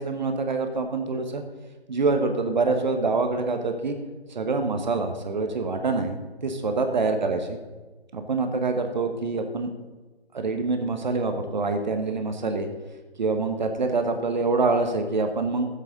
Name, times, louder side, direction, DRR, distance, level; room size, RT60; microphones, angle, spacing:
voice 1, 0.0-1.4 1.9-4.0 4.3-6.2 6.4-7.6 8.1-9.7 10.3-12.7 13.2-15.7, right 3 dB, 45° right, 6 dB, 1.1 m, -25 dB
13.0 x 7.7 x 4.0 m, 1.2 s
figure-of-eight pair, 160°, 31 cm